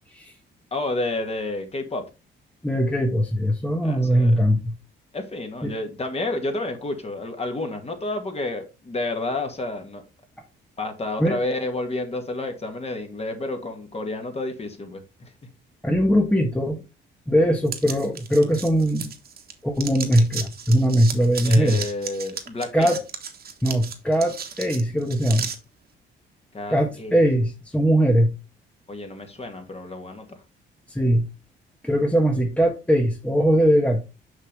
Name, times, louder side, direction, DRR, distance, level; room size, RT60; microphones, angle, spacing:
voice 1, 0.7-2.0 3.8-4.4 5.1-10.0 10.8-15.3 21.4-22.9 26.5-27.2 28.9-30.2, left 2 dB, 30° left, 2.2 m, -30 dB
voice 2, 2.6-4.6 5.6-5.7 11.2-11.4 15.8-16.8 17.3-19.1 19.6-21.8 22.7-23.0 23.6-25.5 26.7-28.3 30.9-31.2 31.8-34.0, equal, 5° left, 1.2 m, -20 dB
sound 1, 17.7-19.5 19.8-25.6, right 7 dB, 50° right, 1.6 m, -34 dB
6.4 x 6.0 x 3.4 m
cardioid pair, 90°, 20 cm